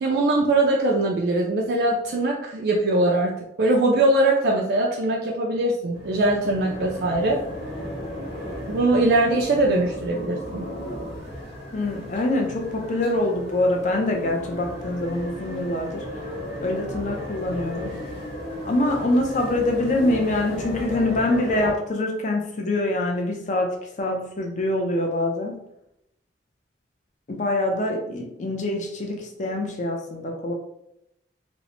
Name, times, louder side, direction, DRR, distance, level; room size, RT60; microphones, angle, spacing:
voice 1, 0.0-3.3 3.6-7.4 8.7-10.7, right 2 dB, 60° right, -1 dB, 0.3 m, -21 dB
sound 1, 5.9-21.7, left 1 dB, 75° left, 1.3 m, -35 dB
voice 2, 11.7-16.1 16.6-18.0 18.6-25.6 27.3-30.5, left 1 dB, 40° left, 2 dB, 0.5 m, -25 dB
2.9 x 2.0 x 2.8 m, 0.80 s
head